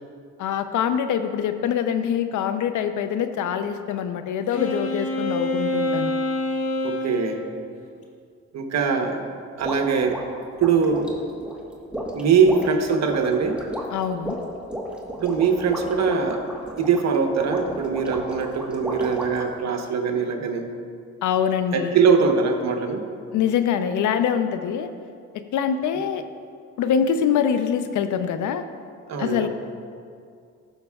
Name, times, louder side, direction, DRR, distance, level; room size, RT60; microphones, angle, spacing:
voice 1, 0.4-6.1 13.9-14.4 21.2-22.0 23.3-24.9 25.3-26.2 26.8-28.6 29.2-29.5, left 8 dB, 75° left, 9 dB, 0.6 m, -24 dB
Wind instrument woodwind instrument, 4.5-7.4, left 2 dB, 50° left, 1.3 m, -26 dB
voice 2, 6.8-7.4 8.5-9.2 9.6-10.2 10.6-11.1 12.1-13.6 15.2-16.4 16.8-20.7 21.7-23.0 29.1-29.5, right 5 dB, 60° right, 4 dB, 1.0 m, -22 dB
sound 1, 9.6-19.5, equal, 5° right, 1.3 m, -34 dB
15.5 x 6.6 x 2.4 m, 2.3 s
cardioid pair, 90°, 30 cm